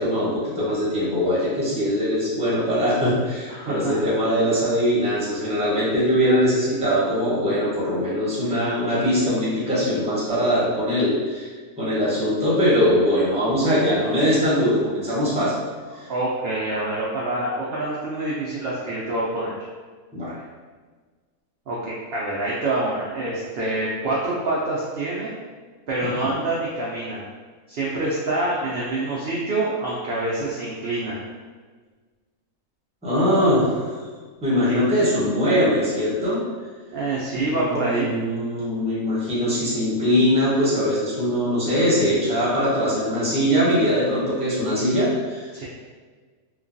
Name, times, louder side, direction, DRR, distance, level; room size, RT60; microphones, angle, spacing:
voice 1, 0.0-11.5 11.8-15.6 16.0-16.1 20.1-20.3 26.0-26.3 33.0-34.0 34.4-36.4 37.4-45.5, equal, 5° right, -9 dB, 0.7 m, -21 dB
voice 2, 3.5-4.0 16.1-19.6 21.7-25.3 25.9-27.2 27.7-31.2 36.9-38.2 45.5-45.6, right 2 dB, 65° right, -6 dB, 0.6 m, -26 dB
3.1 x 2.2 x 2.5 m, 1.5 s
omnidirectional pair, 1.5 m